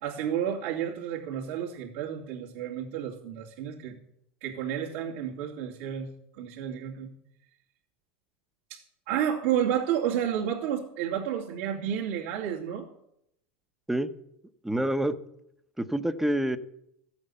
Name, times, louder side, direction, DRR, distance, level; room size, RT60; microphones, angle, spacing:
voice 1, 0.0-4.0 4.4-6.1 6.3-7.1 8.7-12.9, right 9 dB, 70° right, -5 dB, 2.8 m, -31 dB
voice 2, 14.6-15.2 15.8-16.6, right 1 dB, 5° right, 11 dB, 0.9 m, -27 dB
14.5 x 8.7 x 7.0 m, 0.76 s
supercardioid pair, 125°, 7 cm